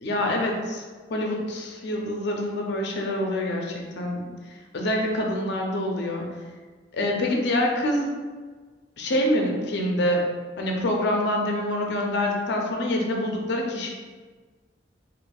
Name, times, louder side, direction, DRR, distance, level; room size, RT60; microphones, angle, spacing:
voice 1, 0.0-0.8 1.1-6.3 6.9-8.1 9.0-10.3 10.6-13.9, left 1 dB, 65° left, 0 dB, 0.5 m, -26 dB
4.2 x 2.6 x 2.3 m, 1.4 s
head